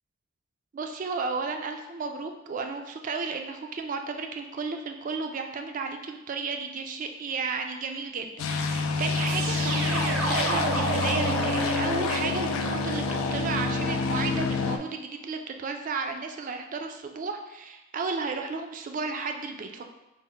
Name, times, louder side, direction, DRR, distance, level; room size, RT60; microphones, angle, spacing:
voice 1, 0.7-19.9, right 4 dB, 40° right, 5 dB, 0.3 m, -33 dB
sound 1, 8.4-14.8, left 4 dB, 85° left, 0.4 m, -28 dB
sound 2, 9.3-14.2, right 2 dB, 75° right, 0.7 m, -31 dB
4.2 x 2.0 x 3.6 m, 0.98 s
head